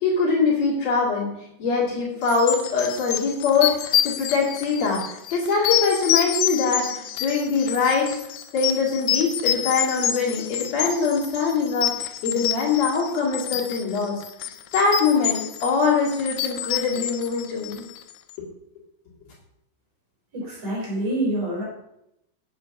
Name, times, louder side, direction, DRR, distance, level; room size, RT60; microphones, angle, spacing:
voice 1, 0.0-1.3 1.6-8.0 8.5-11.9 12.2-14.2 14.7-17.8, left 4 dB, 55° left, -4 dB, 3.4 m, -23 dB
sound 1, 2.3-18.1, left 11 dB, 75° left, 2.1 m, -28 dB
voice 2, 20.3-21.6, right 1 dB, 50° right, -4 dB, 5.0 m, -26 dB
8.2 x 6.9 x 5.9 m, 0.82 s
omnidirectional pair, 3.7 m